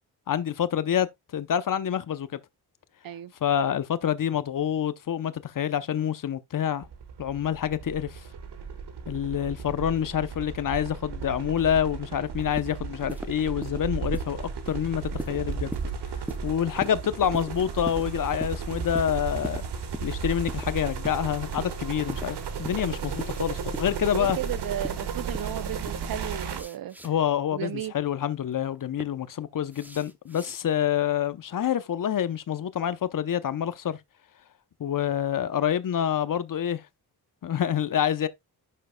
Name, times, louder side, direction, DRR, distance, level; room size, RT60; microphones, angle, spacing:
voice 1, 0.3-1.1 1.3-2.4 3.4-6.9 7.2-8.2 9.1-15.7 16.4-19.6 20.0-24.4 27.0-34.0 34.8-36.8 37.4-38.3, left 9 dB, 55° left, 0.8 m, -27 dB
sound 1, 6.8-26.6, right 5 dB, 80° right, 1.5 m, -34 dB
sound 2, 12.4-12.8 13.1-13.3 13.6-13.8 14.1-14.3 14.7-14.8 15.2-15.4 15.7-15.9 16.3-16.5 16.8-17.0 17.3-17.5 17.9-18.1 18.4-18.6 19.0-19.1 19.4-19.6 19.9-20.1 20.5-20.7 21.0-21.2 21.6-21.7 22.1-22.3 22.6-22.8 23.2-23.3 23.7-23.9 24.3-24.5 24.8-25.0 25.3-25.5 25.9-26.1 26.4-27.1 28.5-29.0 29.7-30.6, right 1 dB, 5° right, 0.7 m, -38 dB
voice 2, 24.0-27.0 27.5-27.9, right 11 dB, 60° right, 0.6 m, -34 dB
10.5 x 6.6 x 2.3 m
wide cardioid pair, 115°, 40 cm